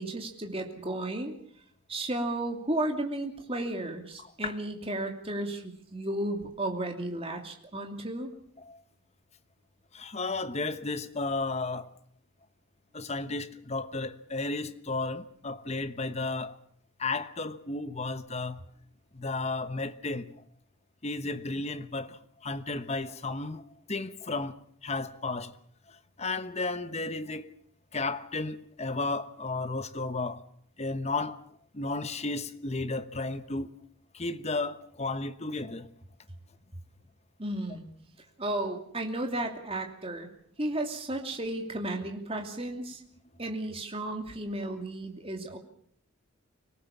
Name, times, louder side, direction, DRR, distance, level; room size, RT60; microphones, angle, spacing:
voice 1, 0.0-1.4 1.9-8.3 37.4-37.9 38.4-40.3 40.6-43.0 43.4-45.6, right 1 dB, 25° right, 2.9 m, -33 dB
voice 2, 9.9-11.9 12.9-16.6 17.0-18.6 19.1-20.3 21.0-24.6 24.8-25.5 25.9-27.5 27.9-30.4 30.8-31.4 31.7-33.7 34.1-35.9, left 3 dB, 30° left, 1.1 m, -33 dB
25.0 x 18.0 x 7.2 m
head